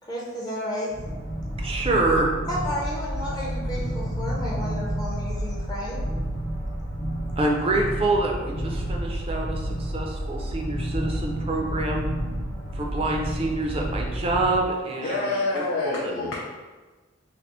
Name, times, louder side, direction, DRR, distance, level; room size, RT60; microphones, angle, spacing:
voice 1, 0.1-1.0 2.5-6.0, left 1 dB, 20° left, -5 dB, 0.5 m, -32 dB
sound 1, 0.9-14.6, equal, 35° left, 0.9 m, -30 dB
voice 2, 1.6-2.3 7.4-12.1 12.7-15.7 16.0-16.1, right 2 dB, 30° right, 0 dB, 0.4 m, -26 dB
voice 3, 15.0-16.4, left 2 dB, 80° left, -5 dB, 0.5 m, -27 dB
3.3 x 2.5 x 2.9 m, 1.3 s
head